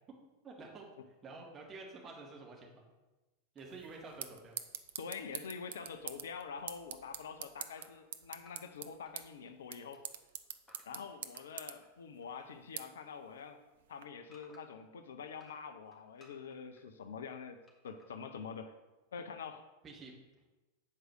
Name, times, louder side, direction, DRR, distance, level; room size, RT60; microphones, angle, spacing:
voice 1, 0.4-0.9 1.2-2.8 3.5-4.6 19.8-20.1, right 3 dB, 20° right, -1 dB, 1.9 m, -49 dB
sound 1, 3.6-14.0, right 9 dB, 60° right, 0.5 m, -47 dB
voice 2, 5.0-10.0 10.9-13.6 13.9-17.6 17.8-18.7 19.1-19.7, left 6 dB, 65° left, 8 dB, 0.6 m, -46 dB
sound 2, 7.7-9.6 9.9-12.6 12.9-14.9 15.3-16.8 17.7-18.2, left 1 dB, 10° left, 1.7 m, -64 dB
7.5 x 4.7 x 6.3 m, 1.1 s
figure-of-eight pair, 90°, 0 cm